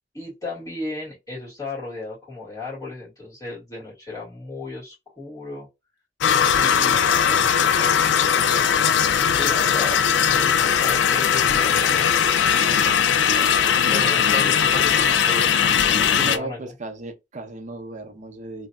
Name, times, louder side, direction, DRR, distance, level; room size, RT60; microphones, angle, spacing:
voice 1, 0.1-5.7 6.4-8.7 9.3-12.3 13.9-16.7, left 2 dB, 20° left, 2.0 m, -35 dB
sound 1, 6.2-16.4, left 8 dB, 80° left, 0.3 m, -19 dB
voice 2, 16.1-18.7, right 2 dB, 45° right, 0.7 m, -35 dB
3.1 x 2.7 x 2.2 m
head